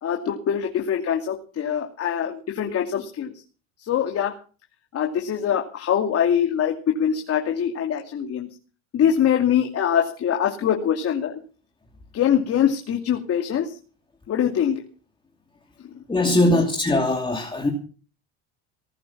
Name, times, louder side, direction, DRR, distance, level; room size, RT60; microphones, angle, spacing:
voice 1, 0.0-3.3 3.8-4.4 4.9-8.5 8.9-11.3 12.1-13.7 14.3-14.8 16.2-16.6, left 9 dB, 45° left, 3 dB, 2.6 m, -23 dB
voice 2, 16.1-17.7, left 1 dB, 15° left, 3 dB, 2.7 m, -21 dB
19.5 x 8.5 x 7.4 m, 0.38 s
supercardioid pair, 100°, 35 cm